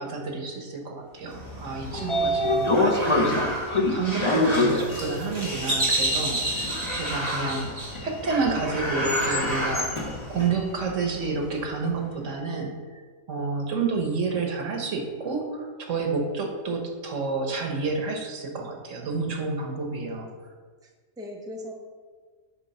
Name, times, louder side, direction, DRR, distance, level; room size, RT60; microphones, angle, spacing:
voice 1, 0.0-3.6 3.9-6.7 7.0-7.6 8.0-9.9 10.3-12.7 13.3-20.3, right 4 dB, 80° right, 2 dB, 1.4 m, -29 dB
sound 1, 1.3-10.5, right 1 dB, 30° right, 1.9 m, -31 dB
Sliding door, 1.5-11.7, left 2 dB, 30° left, 0.7 m, -28 dB
voice 2, 2.0-2.4 21.2-21.7, equal, 5° right, 0 dB, 0.8 m, -38 dB
9.0 x 3.6 x 5.4 m, 1.5 s
omnidirectional pair, 1.3 m